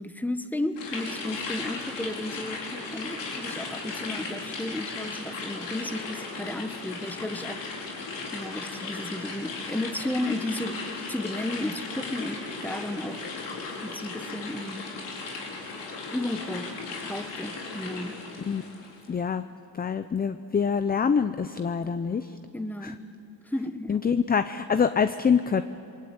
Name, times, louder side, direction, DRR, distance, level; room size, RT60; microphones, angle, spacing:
voice 1, 0.0-7.6 8.3-10.8 11.1-13.2 13.8-14.9 16.1-16.7 17.0-18.2 22.5-23.0 23.4-24.0, left 1 dB, 5° left, 10 dB, 1.2 m, -33 dB
sound 1, 0.8-19.0, left 3 dB, 85° left, 4.9 m, -36 dB
voice 2, 19.1-19.4 19.7-22.4 22.8-22.9 23.9-25.6, left 6 dB, 20° left, 11 dB, 0.6 m, -25 dB
28.0 x 22.5 x 9.0 m, 2.8 s
cardioid pair, 110°, 42 cm